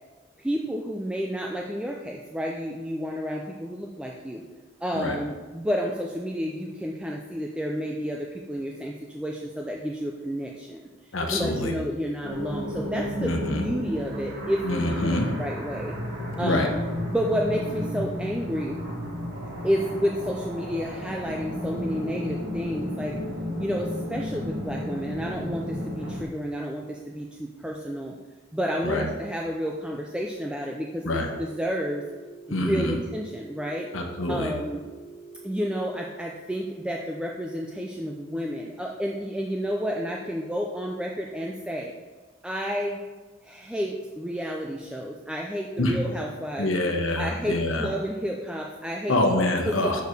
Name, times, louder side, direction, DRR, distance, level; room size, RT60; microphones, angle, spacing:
voice 1, 0.4-4.4 4.8-10.9 11.3-15.1 15.4-15.9 16.4-16.8 17.1-18.8 19.6-23.2 23.6-28.1 28.5-32.1 32.5-33.9 34.3-34.8 35.4-41.9 42.4-43.0 43.4-46.7 47.2-49.1 49.6-50.0, equal, 5° right, 0 dB, 0.4 m, -30 dB
voice 2, 11.1-11.7 13.2-13.7 14.6-15.3 16.4-16.7 28.8-29.1 31.0-31.3 32.5-33.0 33.9-34.5 45.8-46.0 46.6-47.9 49.1-50.0, left 1 dB, 70° left, 3 dB, 1.1 m, -25 dB
sound 1, 12.2-26.2, equal, 55° right, 1.7 m, -33 dB
Telephone, 31.1-36.1, right 3 dB, 35° left, 0.9 m, -46 dB
7.0 x 4.7 x 6.5 m, 1.3 s
head